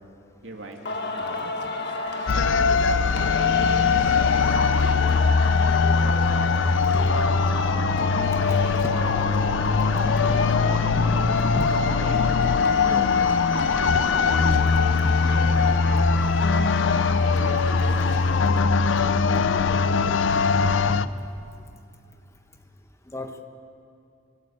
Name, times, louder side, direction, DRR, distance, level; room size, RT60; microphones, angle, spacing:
voice 1, 0.4-1.5 2.2-2.7 3.2-5.0 6.0-9.6 10.3-11.1 11.9-12.2 13.5-18.7, right 1 dB, 70° right, 2 dB, 2.5 m, -40 dB
Singing, 0.9-18.4, left 2 dB, 60° left, 1.5 m, -32 dB
sound 1, 2.3-21.1, left 5 dB, 75° left, 0.6 m, -21 dB
voice 2, 9.8-10.3 11.0-11.1 11.4-11.7 12.9-13.2 19.7-19.8 20.6-21.0 23.1-23.4, left 1 dB, 15° left, 6 dB, 1.0 m, -34 dB
23.5 x 13.0 x 8.7 m, 2.4 s
head